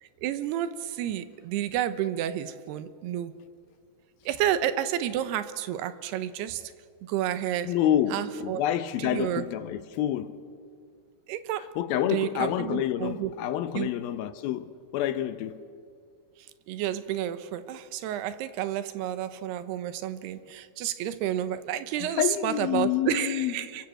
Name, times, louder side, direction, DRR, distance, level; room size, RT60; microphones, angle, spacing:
voice 1, 0.0-3.3 4.3-6.7 7.0-7.7 8.1-8.6 9.0-9.4 11.3-11.7 12.1-13.3 13.7-13.9 16.7-23.9, right 11 dB, 75° right, 2.9 m, -30 dB
voice 2, 7.6-10.4 11.8-15.6 22.2-23.5, left 11 dB, 75° left, 2.4 m, -28 dB
29.0 x 23.5 x 7.7 m
omnidirectional pair, 5.0 m